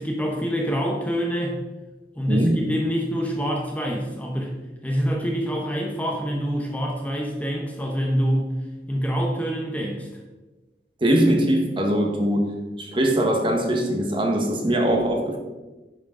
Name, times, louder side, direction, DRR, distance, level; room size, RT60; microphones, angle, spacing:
voice 1, 0.0-1.6 2.2-4.6 4.8-8.5 8.9-10.1, equal, 10° left, -1 dB, 1.0 m, -26 dB
voice 2, 2.3-2.6 11.0-12.5 12.8-15.4, right 1 dB, 30° right, 2 dB, 1.4 m, -21 dB
9.6 x 6.3 x 3.8 m, 1.2 s
head